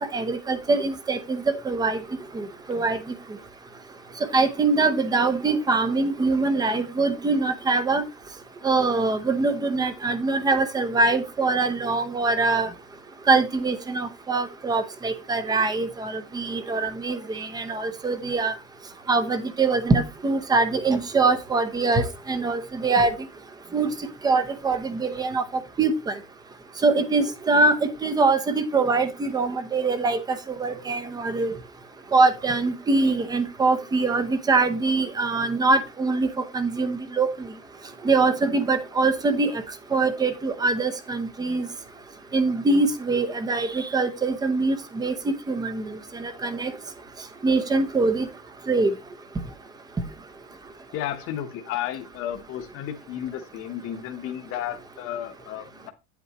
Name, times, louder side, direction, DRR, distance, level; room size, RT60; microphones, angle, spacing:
voice 1, 0.1-2.0 2.3-3.0 4.3-8.0 8.6-12.7 13.3-18.5 19.1-23.1 23.7-23.9 24.2-25.4 25.8-26.1 26.8-31.5 32.1-37.3 38.0-39.5 39.9-41.7 42.3-46.7 47.4-48.3 48.7-48.9, right 3 dB, 10° right, 11 dB, 0.7 m, -23 dB
voice 2, 50.9-55.9, left 11 dB, 40° left, 4 dB, 1.1 m, -33 dB
9.1 x 8.3 x 3.0 m, 0.26 s
cardioid pair, 170°, 34 cm